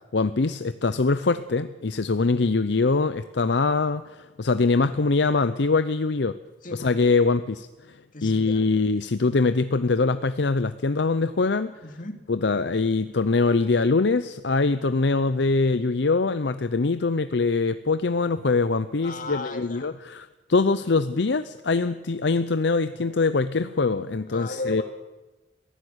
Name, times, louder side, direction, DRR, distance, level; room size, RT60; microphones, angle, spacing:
voice 1, 0.1-6.3 6.7-8.0 8.2-11.7 12.3-24.8, left 3 dB, 65° left, 12 dB, 0.7 m, -23 dB
voice 2, 6.6-6.9 8.1-8.7 11.8-12.3 19.0-20.0 24.3-24.8, left 2 dB, 45° left, 6 dB, 2.5 m, -35 dB
22.0 x 15.5 x 8.1 m, 1.1 s
head